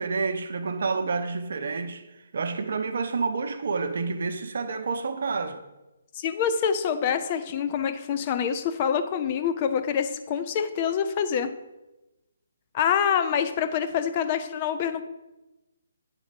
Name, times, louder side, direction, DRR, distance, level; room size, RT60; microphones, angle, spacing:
voice 1, 0.0-2.0 2.3-5.6, right 4 dB, 65° right, 0.7 m, -29 dB
voice 2, 6.1-11.5 12.7-15.0, left 7 dB, 35° left, 0.5 m, -26 dB
8.9 x 4.1 x 5.1 m
figure-of-eight pair, 145°, 0 cm